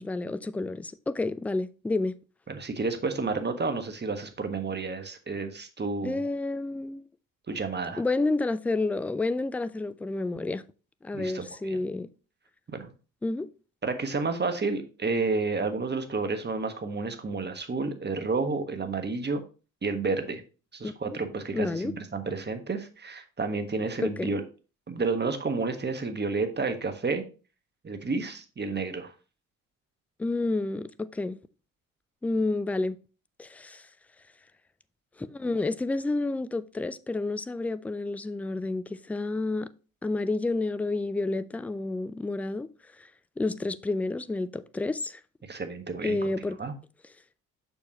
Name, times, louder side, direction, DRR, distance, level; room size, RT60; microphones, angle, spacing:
voice 1, 0.0-2.1 6.0-7.0 8.0-10.6 11.0-12.1 13.2-13.5 20.8-21.2 21.5-21.9 24.0-24.3 30.2-31.4 32.2-33.0 33.4-33.8 35.2-39.7 40.0-42.7 43.0-43.1 43.4-45.2 46.0-46.6, left 2 dB, 5° left, 0.3 m, -30 dB
voice 2, 2.5-6.2 7.5-8.0 11.1-11.8 12.7-12.9 13.8-19.4 19.8-20.4 20.7-24.4 24.9-27.2 27.8-29.1 45.4-46.2 46.6-46.7, right 4 dB, 25° right, 1.4 m, -30 dB
6.9 x 6.3 x 2.9 m
hypercardioid pair, 50°, 42 cm